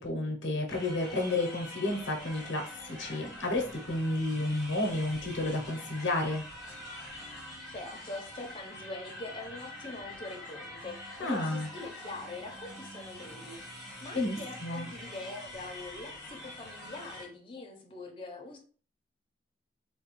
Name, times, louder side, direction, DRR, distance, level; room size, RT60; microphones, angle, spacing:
voice 1, 0.0-6.4 11.2-11.7 14.1-14.9, left 2 dB, 80° left, 2 dB, 0.6 m, -31 dB
sound 1, 0.7-17.3, left 1 dB, ahead, 1.1 m, -45 dB
voice 2, 7.7-18.6, left 2 dB, 30° left, 1 dB, 0.6 m, -43 dB
3.0 x 2.2 x 2.9 m, 0.41 s
head